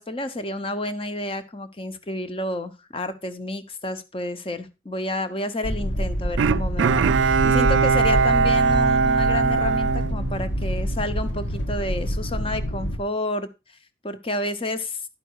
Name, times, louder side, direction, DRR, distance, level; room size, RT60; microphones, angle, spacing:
voice 1, 0.0-13.5 14.0-15.0, left 1 dB, 30° left, 10 dB, 0.8 m, -30 dB
sound 1, 5.6-13.0, equal, 80° left, 1.3 m, -27 dB
Bowed string instrument, 6.4-10.9 11.3-11.4, right 5 dB, 85° right, 0.4 m, -21 dB
11.0 x 5.3 x 4.6 m, 0.27 s
head